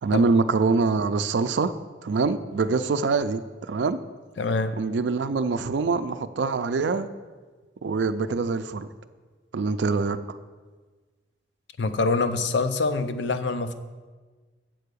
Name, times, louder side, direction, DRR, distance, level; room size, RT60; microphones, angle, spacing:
voice 1, 0.0-1.7 2.0-3.4 3.7-4.0 4.8-7.1 7.8-8.9 9.5-10.4, right 4 dB, 75° right, 0.4 m, -24 dB
voice 2, 4.4-4.8 11.8-13.7, left 3 dB, 75° left, 0.5 m, -25 dB
7.7 x 4.6 x 6.7 m
head